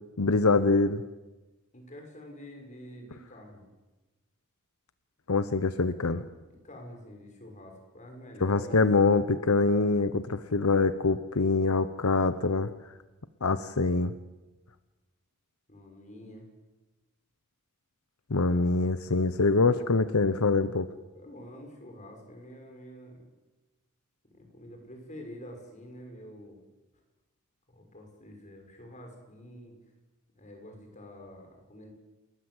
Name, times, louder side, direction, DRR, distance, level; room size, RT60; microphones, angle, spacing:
voice 1, 0.2-1.0 5.3-6.2 8.4-12.7 13.4-14.1 18.3-20.9, left 3 dB, 85° left, 12 dB, 1.0 m, -24 dB
voice 2, 1.7-3.6 6.4-8.9 15.7-16.5 21.1-23.2 24.3-26.6 27.7-29.8 30.3-31.9, equal, 35° left, 3 dB, 6.5 m, -47 dB
28.5 x 21.0 x 8.1 m, 1.1 s
head